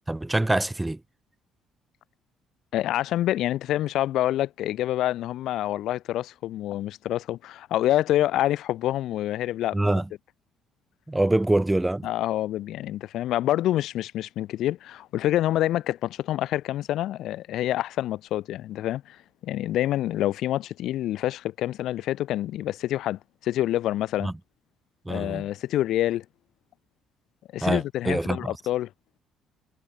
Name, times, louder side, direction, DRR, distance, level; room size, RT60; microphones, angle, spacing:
voice 1, 0.1-1.0 9.7-10.1 11.1-12.1 24.2-24.3 25.1-25.4 27.6-28.6, right 1 dB, 10° right, 2.4 m, -25 dB
voice 2, 2.7-10.0 12.0-24.3 25.1-26.2 27.5-28.9, left 13 dB, 70° left, 6.5 m, -27 dB
cardioid pair, 125°, 0 cm